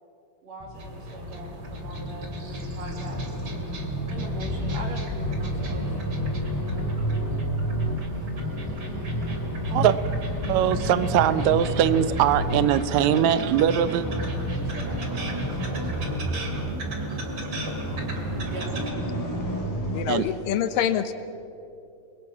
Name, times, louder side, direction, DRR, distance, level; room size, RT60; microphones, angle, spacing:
voice 1, 0.4-3.4 4.1-5.9 10.6-10.7 12.3-12.4 13.7-13.8 14.1-16.2 18.4-18.7, right 2 dB, 55° right, 1 dB, 3.4 m, -42 dB
sound 1, 0.6-20.1, equal, 5° left, 3.8 m, -30 dB
sound 2, 0.7-18.9, right 3 dB, 35° right, 2.5 m, -42 dB
voice 2, 10.5-14.0 20.1-20.4, right 10 dB, 75° right, 13 dB, 1.7 m, -21 dB
voice 3, 19.9-21.1, left 9 dB, 80° left, 10 dB, 2.6 m, -25 dB
30.0 x 21.5 x 6.0 m, 2.6 s
omnidirectional pair, 4.0 m